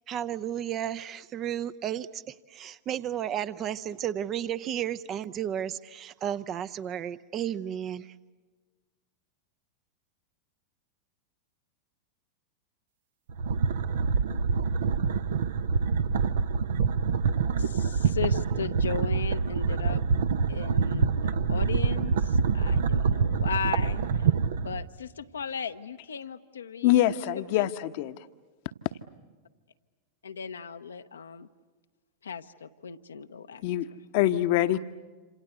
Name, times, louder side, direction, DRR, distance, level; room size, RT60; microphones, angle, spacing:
voice 1, 0.1-8.1, right 10 dB, 30° right, 13 dB, 0.8 m, -33 dB
sound 1, 13.3-24.8, right 5 dB, 60° right, 0.9 m, -26 dB
voice 2, 17.6-20.0 20.5-24.3 24.6-27.0 27.3-27.7 30.2-31.5 32.2-33.6, left 6 dB, 70° left, 9 dB, 0.9 m, -36 dB
voice 3, 26.8-28.2 33.6-33.9 34.1-34.8, left 14 dB, 50° left, 11 dB, 1.0 m, -24 dB
27.5 x 26.5 x 8.2 m, 1.3 s
figure-of-eight pair, 90°, 0 cm